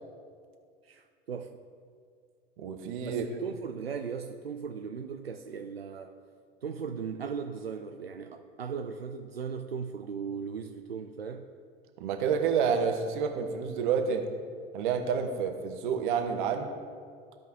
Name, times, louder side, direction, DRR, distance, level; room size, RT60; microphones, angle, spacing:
voice 1, 0.8-1.5 3.0-6.1 6.6-11.5, right 6 dB, 85° right, 4 dB, 0.4 m, -37 dB
voice 2, 2.6-3.2 12.0-14.3 14.7-16.7, right 6 dB, 55° right, 6 dB, 1.0 m, -29 dB
15.0 x 5.2 x 2.7 m, 2.1 s
figure-of-eight pair, 75°, 29 cm